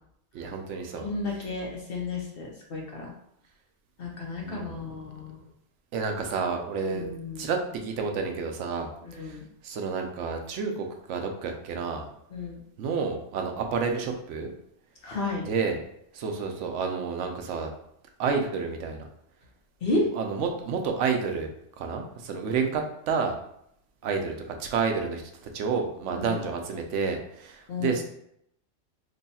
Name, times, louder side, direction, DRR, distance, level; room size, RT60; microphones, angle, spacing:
voice 1, 0.3-1.1 4.4-4.8 5.9-7.1 7.4-9.4 9.6-12.1 12.8-14.5 15.5-15.8 16.1-17.7 18.2-19.1 20.1-21.5 21.8-23.3 24.0-24.3 24.6-25.2 25.5-28.0, right 5 dB, 90° right, 4 dB, 0.9 m, -30 dB
voice 2, 1.0-3.1 4.0-5.4 6.9-7.5 9.0-9.4 12.3-12.6 15.0-15.4 19.8-20.1 26.1-26.4 27.7-28.0, left 2 dB, 55° left, -2 dB, 1.0 m, -32 dB
3.1 x 2.3 x 4.0 m, 0.74 s
omnidirectional pair, 1.2 m